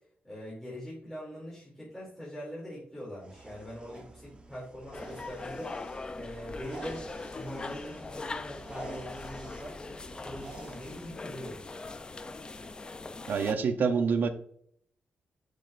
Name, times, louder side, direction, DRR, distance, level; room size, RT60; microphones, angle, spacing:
voice 1, 0.2-5.8 6.1-7.0 7.3-9.8 10.1-11.6, equal, 10° left, -8 dB, 2.7 m, -42 dB
sound 1, 3.2-11.2, right 2 dB, 30° right, 0.9 m, -48 dB
sound 2, 4.9-13.5, left 3 dB, 25° left, 0.4 m, -41 dB
voice 2, 13.3-14.3, right 5 dB, 60° right, 8 dB, 0.6 m, -26 dB
6.5 x 6.2 x 2.5 m, 0.64 s
wide cardioid pair, 155°, 4 cm